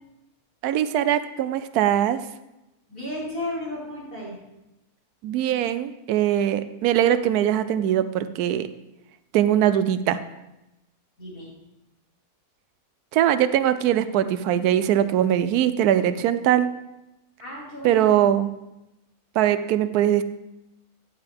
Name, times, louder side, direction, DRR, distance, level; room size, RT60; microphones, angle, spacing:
voice 1, 0.6-2.2 5.2-8.7 9.3-10.2 13.1-16.7 17.8-18.5 19.4-20.2, right 11 dB, 90° right, 12 dB, 1.1 m, -21 dB
voice 2, 2.9-4.4 11.2-11.5 17.4-18.2, left 1 dB, 85° left, -8 dB, 5.5 m, -34 dB
14.5 x 9.1 x 3.5 m, 0.94 s
omnidirectional pair, 1.6 m